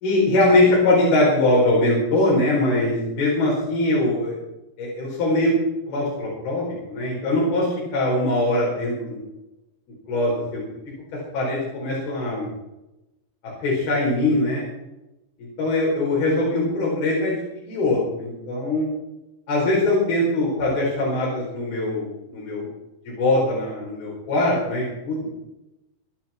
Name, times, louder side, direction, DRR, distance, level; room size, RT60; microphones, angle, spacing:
voice 1, 0.0-4.3 4.8-5.5 5.9-9.2 10.1-10.8 11.3-12.5 13.6-14.6 15.4-17.3 17.7-18.9 19.5-22.7 23.1-25.3, left 2 dB, 80° left, -5 dB, 6.8 m, -22 dB
22.0 x 11.5 x 4.5 m, 0.94 s
omnidirectional pair, 4.4 m